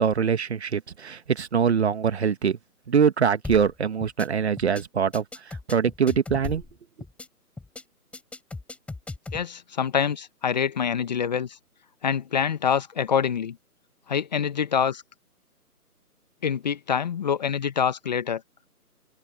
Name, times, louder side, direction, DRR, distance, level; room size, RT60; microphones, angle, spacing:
voice 1, 0.0-2.6 2.9-5.2 5.7-6.6, right 7 dB, 45° right, 1.8 m, -23 dB
sound 1, 3.4-3.7 4.0-4.3 4.6-4.8 5.1-6.7 7.0-7.3 7.6-7.8 8.1-9.4, left 3 dB, 5° left, 6.8 m, -37 dB
voice 2, 9.3-11.6 12.0-13.6 14.1-15.0 16.4-18.4, left 7 dB, 30° left, 1.3 m, -25 dB
open air
figure-of-eight pair, 155°, 46 cm